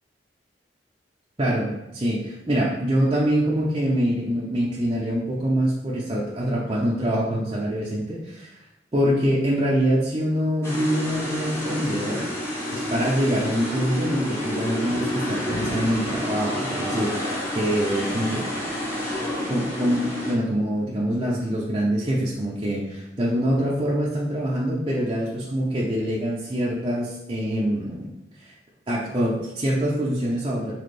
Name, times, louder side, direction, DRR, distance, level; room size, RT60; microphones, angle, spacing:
voice 1, 1.4-8.5 8.9-12.2 12.7-18.5 19.5-28.1 28.4-28.5 28.9-30.7, equal, 30° right, -6 dB, 0.7 m, -25 dB
sound 1, 10.6-20.3, left 1 dB, 15° left, 1.2 m, -29 dB
4.2 x 3.7 x 3.3 m, 0.89 s
head